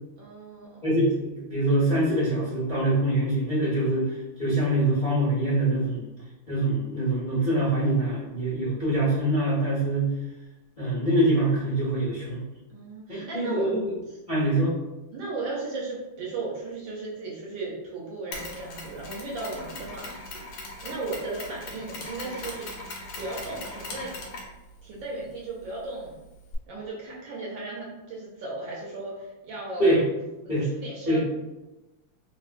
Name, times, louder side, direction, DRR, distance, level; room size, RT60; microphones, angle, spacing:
voice 1, 0.2-0.9 12.7-13.6 15.1-20.4 20.8-22.7 23.2-24.1 24.8-26.2 26.7-30.0 30.4-31.2, right 3 dB, 70° right, -4 dB, 1.3 m, -36 dB
voice 2, 0.8-6.0 6.5-10.1 10.8-12.4 13.1-13.8 14.3-14.7 29.8-30.0 30.5-30.7 31.1-31.2, right 1 dB, 40° left, -11 dB, 0.6 m, -24 dB
Mechanisms, 18.3-26.6, left 2 dB, 70° left, 1.3 m, -40 dB
3.6 x 2.2 x 2.4 m, 1.0 s
omnidirectional pair, 2.4 m